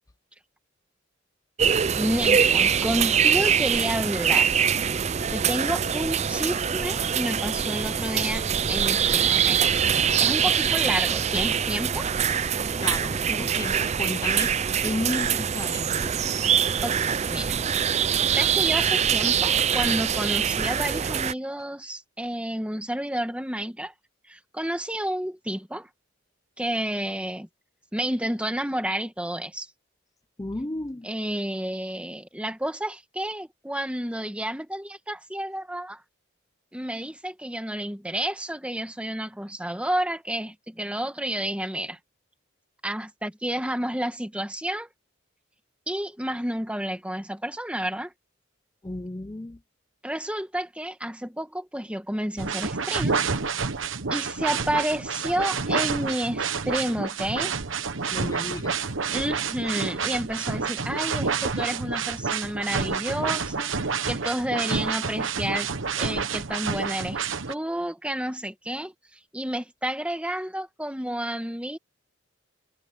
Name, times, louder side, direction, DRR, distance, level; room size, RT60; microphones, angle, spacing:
sound 1, 1.6-21.3, right 7 dB, 35° right, 0.5 m, -24 dB
voice 1, 2.0-4.6 5.3-9.6 10.2-12.1 16.8-17.6 18.4-23.9 24.3-25.9 26.6-27.5 27.9-29.7 31.0-36.0 36.7-42.0 42.8-44.9 45.9-48.1 50.0-53.3 54.1-57.6 59.1-63.7 64.1-65.7 66.0-68.9 69.3-71.8, right 1 dB, 5° right, 1.5 m, -30 dB
voice 2, 12.8-14.5 14.8-16.3 30.4-31.1 48.8-49.6 58.1-58.8, left 2 dB, 15° left, 0.5 m, -33 dB
sound 2, 52.4-67.5, right 5 dB, 75° right, 1.2 m, -29 dB
head